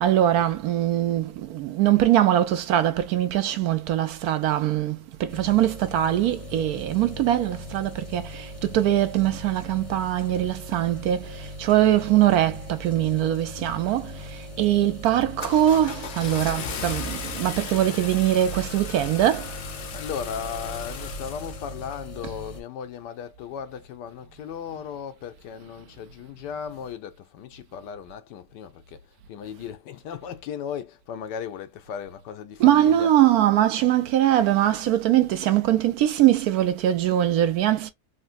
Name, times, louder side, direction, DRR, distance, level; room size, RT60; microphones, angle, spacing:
voice 1, 0.0-11.2 11.6-14.1 14.6-19.5 32.6-37.9, right 12 dB, 70° right, 1.0 m, -22 dB
sound 1, 5.3-22.6, left 1 dB, 35° left, 0.5 m, -40 dB
Car / Engine starting, 14.3-14.6 15.0-22.0, left 3 dB, 55° left, 0.9 m, -35 dB
voice 2, 19.9-33.1, left 8 dB, 85° left, 1.3 m, -36 dB
3.9 x 2.2 x 2.4 m
omnidirectional pair, 1.8 m